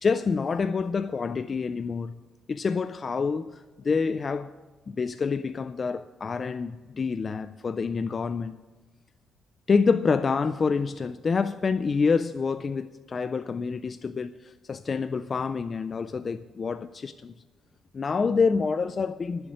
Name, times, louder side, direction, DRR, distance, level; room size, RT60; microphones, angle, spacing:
voice 1, 0.0-2.2 2.5-4.5 4.9-8.5 9.7-17.3 17.9-19.5, left 5 dB, 40° left, 0.3 m, -27 dB
11.5 x 7.8 x 6.3 m
cardioid pair, 90°, 0 cm